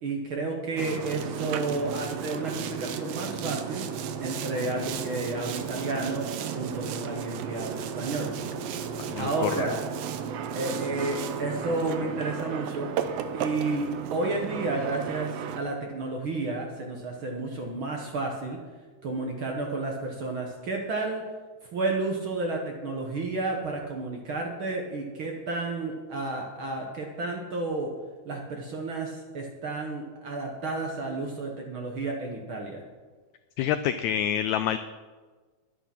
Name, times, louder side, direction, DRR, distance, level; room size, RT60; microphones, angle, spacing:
voice 1, 0.0-3.8 4.2-6.3 6.5-8.3 9.2-9.8 10.5-12.9 13.3-18.6 19.0-21.2 21.7-27.9 28.2-32.8, right 3 dB, 55° right, 1 dB, 1.5 m, -31 dB
Boat Water vehicle, 0.8-15.6, right 7 dB, 80° right, 1.5 m, -34 dB
voice 2, 8.8-9.7 33.6-34.8, left 10 dB, 85° left, 11 dB, 1.6 m, -28 dB
11.0 x 9.9 x 5.9 m, 1.3 s
omnidirectional pair, 3.8 m